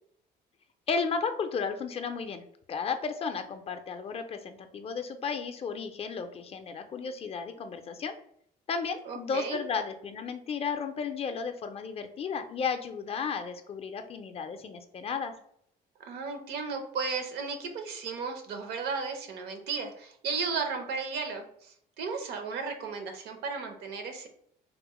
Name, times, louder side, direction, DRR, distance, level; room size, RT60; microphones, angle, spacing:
voice 1, 0.9-2.4 2.7-8.2 8.7-15.3, left 5 dB, 35° left, 7 dB, 0.4 m, -33 dB
voice 2, 9.0-9.6 16.0-24.3, right 5 dB, 75° right, 5 dB, 0.7 m, -35 dB
3.5 x 2.0 x 2.9 m, 0.68 s
cardioid pair, 110°, 17 cm